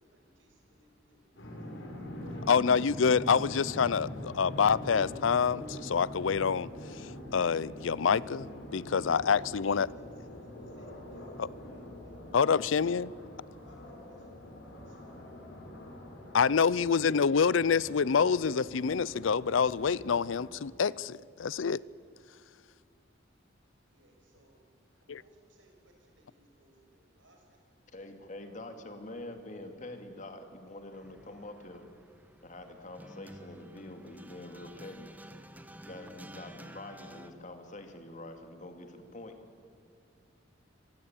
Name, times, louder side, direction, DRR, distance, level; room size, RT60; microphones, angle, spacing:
voice 1, 0.0-1.8 2.3-2.9 9.3-13.1 13.6-15.4 23.9-24.6 24.9-27.8, right 1 dB, 80° right, 6.5 m, -65 dB
sound 1, 1.4-20.5, left 1 dB, 70° left, 5.7 m, -44 dB
voice 2, 2.5-6.7 7.3-9.9 11.4-11.5 12.3-13.1 16.3-21.8 25.1-25.2, left 6 dB, 90° left, 0.5 m, -27 dB
voice 3, 27.9-31.9 32.4-35.1 35.9-39.4, left 1 dB, 40° left, 2.3 m, -45 dB
sound 2, 30.9-37.3, equal, 10° right, 1.3 m, -51 dB
25.0 x 20.0 x 8.9 m
head